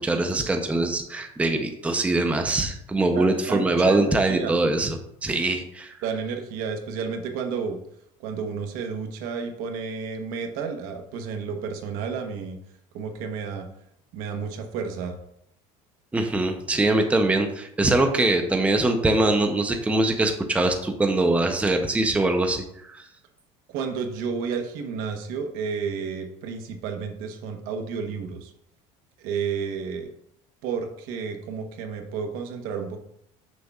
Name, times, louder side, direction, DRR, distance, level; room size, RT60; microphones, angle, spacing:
voice 1, 0.0-5.9 16.1-23.1, right 2 dB, 10° right, 5 dB, 0.6 m, -23 dB
voice 2, 3.1-4.0 4.3-4.6 6.0-7.8 8.2-12.6 12.9-13.7 14.1-15.1 23.7-28.5 29.2-30.1 30.6-33.0, right 6 dB, 70° right, 5 dB, 1.0 m, -31 dB
6.7 x 6.4 x 2.4 m, 0.73 s
cardioid pair, 120°, 15 cm